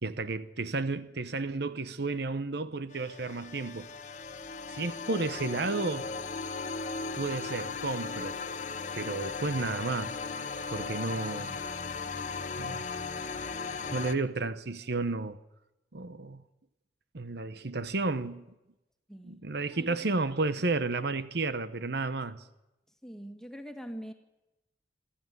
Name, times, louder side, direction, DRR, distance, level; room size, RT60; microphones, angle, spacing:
voice 1, 0.0-3.9 4.7-6.1 7.1-8.4 8.9-10.2 10.7-11.6 12.6-12.9 13.9-15.4 15.9-16.4 17.1-18.4 19.2-22.4, right 3 dB, 65° right, 1.0 m, -32 dB
sound 1, 2.9-14.1, left 4 dB, 40° left, 1.2 m, -37 dB
voice 2, 19.1-19.4 19.7-20.0 23.0-24.1, equal, 5° left, 2.1 m, -43 dB
28.0 x 13.0 x 9.5 m
head